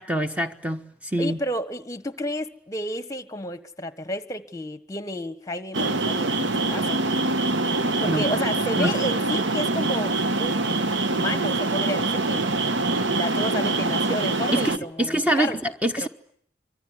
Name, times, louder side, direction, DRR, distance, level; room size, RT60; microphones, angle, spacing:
voice 1, 0.0-1.4 8.1-8.3 8.8-8.9 14.5-16.1, right 1 dB, 10° right, 1.2 m, -25 dB
voice 2, 1.2-7.0 7.8-10.9 11.1-12.5 13.0-15.6 16.0-16.1, left 1 dB, 20° left, 1.3 m, -31 dB
sound 1, 5.7-14.8, right 2 dB, 85° right, 1.3 m, -24 dB
25.5 x 24.0 x 9.7 m
head